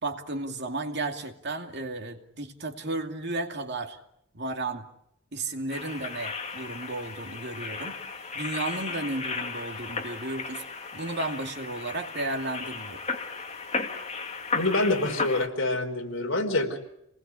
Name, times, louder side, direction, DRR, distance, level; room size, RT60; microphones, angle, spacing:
voice 1, 0.0-4.0 4.3-4.8 5.3-8.0 8.3-10.6 10.9-13.0, right 2 dB, 55° right, 4 dB, 2.6 m, -33 dB
sound 1, 5.7-15.5, left 4 dB, 35° left, 2.4 m, -35 dB
voice 2, 14.5-16.8, left 2 dB, 65° left, 4 dB, 4.4 m, -26 dB
28.0 x 20.0 x 8.4 m, 0.78 s
head